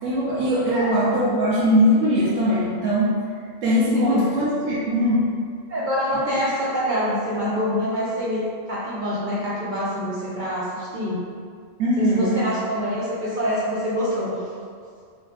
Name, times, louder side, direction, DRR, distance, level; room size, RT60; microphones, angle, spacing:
voice 1, 0.0-3.1 3.6-5.3 11.8-12.4, equal, 85° right, -9 dB, 1.0 m, -20 dB
voice 2, 0.7-1.0 3.9-4.3 5.7-11.2 12.0-14.4, equal, 55° right, -8 dB, 0.5 m, -25 dB
3.0 x 2.1 x 3.3 m, 2.1 s
omnidirectional pair, 1.3 m